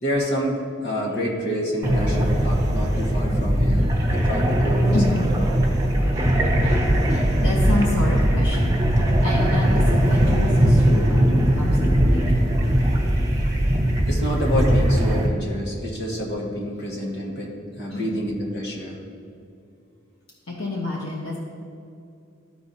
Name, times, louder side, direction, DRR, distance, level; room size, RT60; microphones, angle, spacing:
voice 1, 0.0-5.3 14.1-19.0, equal, 55° left, -3 dB, 1.6 m, -28 dB
sound 1, 1.8-15.3, equal, 15° right, 1.0 m, -20 dB
voice 2, 4.9-5.6 6.1-6.3 6.6-6.8 7.1-12.5 17.9-18.1 20.5-21.4, left 2 dB, 85° left, -2 dB, 1.0 m, -29 dB
13.5 x 4.6 x 2.8 m, 2.5 s
head